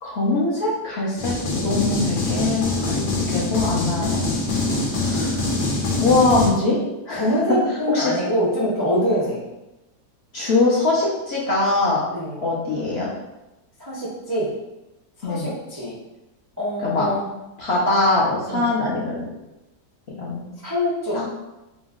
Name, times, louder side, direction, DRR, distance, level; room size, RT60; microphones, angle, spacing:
voice 1, 0.0-1.3 1.6-4.3 5.0-5.4 6.0-6.8 7.1-7.2 7.9-8.1 10.3-12.0 12.4-13.1 15.2-15.5 16.8-17.1 17.6-19.3 20.2-20.5 21.1-21.3, left 2 dB, 50° left, -6 dB, 0.8 m, -22 dB
sound 1, 1.2-6.5, left 2 dB, 80° left, 1.4 m, -24 dB
voice 2, 7.1-9.4 12.1-12.4 13.8-14.5 15.2-15.9 16.6-17.3 18.5-18.7 20.6-21.3, equal, 35° right, -8 dB, 0.3 m, -24 dB
3.1 x 3.0 x 3.6 m, 0.96 s
omnidirectional pair, 1.8 m